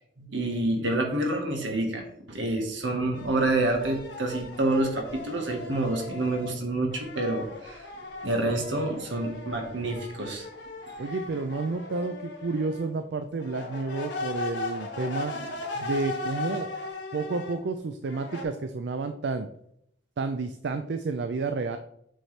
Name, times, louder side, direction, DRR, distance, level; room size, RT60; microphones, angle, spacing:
voice 1, 0.2-7.8 8.2-10.4 15.3-15.5, right 2 dB, 80° right, 2 dB, 1.4 m, -28 dB
sound 1, 3.1-6.6 6.9-12.9 13.4-17.6 18.1-18.4, left 3 dB, 70° left, 1.3 m, -38 dB
voice 2, 11.0-15.3 15.8-16.7 17.1-19.5 20.2-21.8, right 3 dB, 65° right, 8 dB, 0.4 m, -30 dB
7.8 x 4.4 x 3.2 m, 0.72 s
head